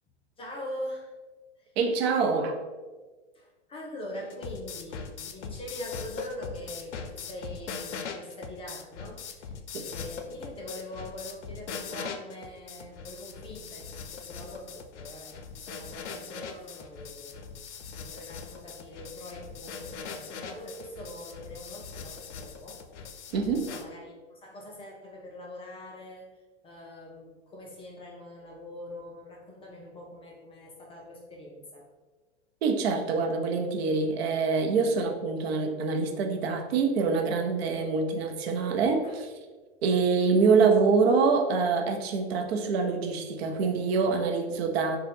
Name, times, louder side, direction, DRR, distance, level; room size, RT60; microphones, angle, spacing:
voice 1, 0.4-1.1 1.6-1.7 3.3-9.5 9.9-17.5 18.0-22.8 23.4-31.9 39.0-39.1 40.4-40.5, left 1 dB, 15° left, -1 dB, 0.4 m, -43 dB
voice 2, 1.8-2.5 23.3-23.7 32.6-39.3 39.8-45.0, right 4 dB, 60° right, 4 dB, 0.6 m, -25 dB
sound 1, 4.1-23.8, left 6 dB, 85° left, 0.5 m, -41 dB
3.9 x 2.2 x 3.4 m, 1.3 s
hypercardioid pair, 110°, 35 cm